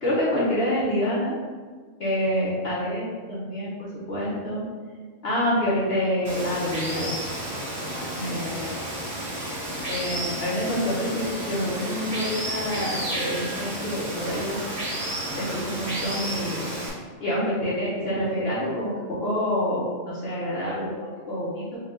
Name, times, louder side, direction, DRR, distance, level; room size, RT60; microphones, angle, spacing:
voice 1, 0.0-1.4 2.0-4.6 5.2-7.2 7.8-8.8 9.9-14.6 15.3-16.7 17.2-21.8, equal, 55° left, -8 dB, 1.0 m, -27 dB
Water, 6.2-16.9, right 1 dB, 60° right, 2.0 m, -32 dB
4.4 x 2.4 x 3.6 m, 1.6 s
omnidirectional pair, 1.4 m